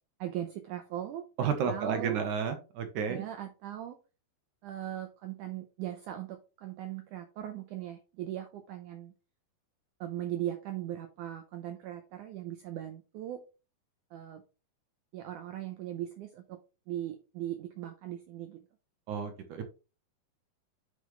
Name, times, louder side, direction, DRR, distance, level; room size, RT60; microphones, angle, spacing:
voice 1, 0.2-1.3 1.6-2.3 3.1-4.0 4.6-9.1 10.0-13.4 14.1-14.4 15.1-16.6 16.9-18.7, right 12 dB, 85° right, 7 dB, 1.7 m, -39 dB
voice 2, 1.4-3.2 19.1-19.6, right 6 dB, 65° right, 7 dB, 2.2 m, -31 dB
10.5 x 5.1 x 3.2 m, 0.31 s
omnidirectional pair, 4.5 m